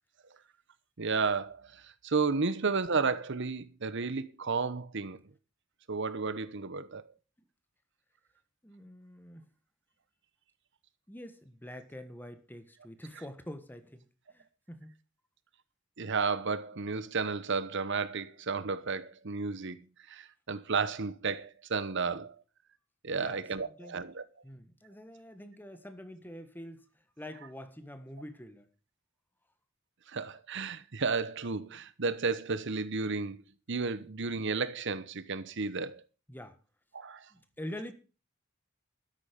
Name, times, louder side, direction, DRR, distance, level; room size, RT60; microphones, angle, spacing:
voice 1, 1.0-5.2 5.9-7.0 16.0-19.8 20.1-22.4 23.0-24.2 30.1-36.0 36.9-37.3, right 4 dB, 60° right, 1.0 m, -32 dB
voice 2, 8.6-9.5 11.1-14.9 23.1-24.0 24.4-26.9 27.2-28.7 36.3-36.6 37.3-37.9, left 1 dB, 10° left, 1.5 m, -46 dB
13.0 x 10.5 x 5.3 m
head